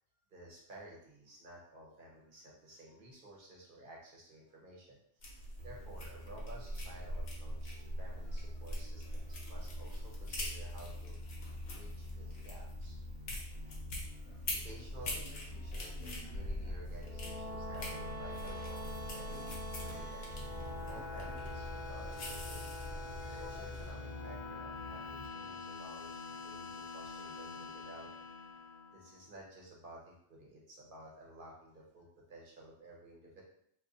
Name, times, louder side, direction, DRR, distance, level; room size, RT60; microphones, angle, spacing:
voice 1, 0.3-11.4 11.7-13.0 14.4-20.2 20.5-22.7 23.3-28.3 28.9-33.4, right 1 dB, 55° right, -2 dB, 1.0 m, -54 dB
sound 1, 5.2-23.9, left 1 dB, 70° left, 1.1 m, -43 dB
sound 2, 5.6-25.3, left 2 dB, 85° right, 0.9 m, -49 dB
sound 3, 16.9-29.2, left 2 dB, 50° left, 0.7 m, -45 dB
2.6 x 2.6 x 3.7 m, 0.71 s
omnidirectional pair, 1.1 m